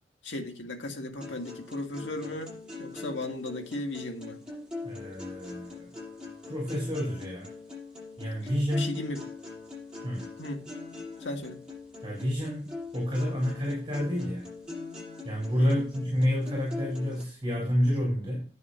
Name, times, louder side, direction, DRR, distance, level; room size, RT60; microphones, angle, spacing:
voice 1, 0.2-4.4 8.8-9.2 10.4-10.6 11.2-11.6 15.6-15.9, left 1 dB, 85° left, 5 dB, 1.8 m, -36 dB
sound 1, 1.2-17.2, left 3 dB, 5° right, 7.0 m, -42 dB
voice 2, 4.8-5.9 6.5-7.5 8.2-9.0 10.0-10.3 12.0-12.7 12.9-14.5 15.2-18.5, equal, 25° right, -2 dB, 4.3 m, -29 dB
10.0 x 6.9 x 5.6 m, 0.38 s
head